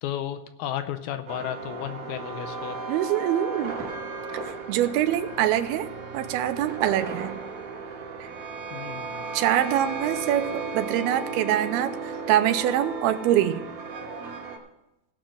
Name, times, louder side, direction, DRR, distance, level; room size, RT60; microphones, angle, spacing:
voice 1, 0.0-2.8 8.7-9.2, left 11 dB, 80° left, 9 dB, 2.5 m, -33 dB
sound 1, 1.3-14.6, right 4 dB, 60° right, 2.8 m, -35 dB
voice 2, 2.9-3.8 4.7-5.9 6.1-7.3 8.2-8.3 9.3-13.6, right 11 dB, 80° right, 10 dB, 2.5 m, -24 dB
17.0 x 5.9 x 6.3 m, 0.91 s
omnidirectional pair, 4.7 m